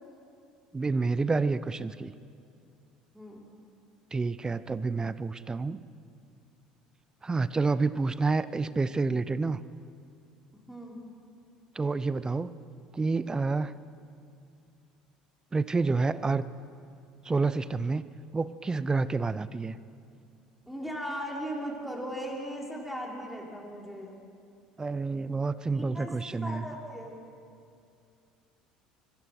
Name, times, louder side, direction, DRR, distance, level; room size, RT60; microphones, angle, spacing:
voice 1, 0.7-2.1 4.1-5.8 7.2-9.6 11.7-12.6 12.9-13.7 15.5-16.4 17.2-18.0 18.3-19.8 24.8-26.7, right 3 dB, 20° right, 16 dB, 0.8 m, -28 dB
voice 2, 3.1-3.4 10.7-11.0 20.7-24.2 25.7-27.2, equal, ahead, -2 dB, 5.5 m, -38 dB
25.0 x 22.0 x 6.2 m, 2.5 s
hypercardioid pair, 65°, 3 cm